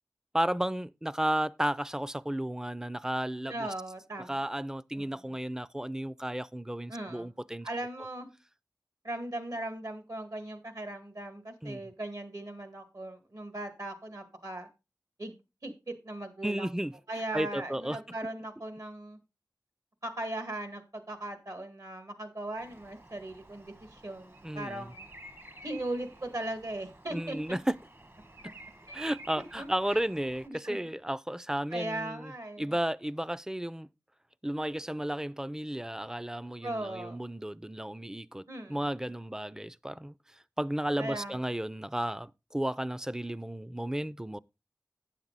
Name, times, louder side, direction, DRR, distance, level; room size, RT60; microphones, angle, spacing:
voice 1, 0.3-3.7 4.3-7.7 11.6-11.8 16.4-16.9 17.3-18.0 24.4-24.9 27.1-27.7 28.4-28.5 28.9-32.3 32.6-33.9 34.4-40.1 40.6-44.4, right 1 dB, 10° right, 0.4 m, -33 dB
voice 2, 3.5-4.3 5.0-5.2 6.9-7.3 7.6-8.3 9.0-14.7 15.2-15.3 15.6-16.7 17.1-19.2 20.0-25.1 25.6-27.4 28.9-29.0 29.6-29.7 30.4-31.0 31.7-32.7 36.6-37.2 38.5-38.8 41.0-41.4, right 1 dB, 65° right, 1.9 m, -38 dB
Bird vocalization bird call bird song, 22.6-30.5, right 2 dB, 40° right, 1.1 m, -52 dB
9.5 x 7.4 x 4.0 m
wide cardioid pair, 50°, 6 cm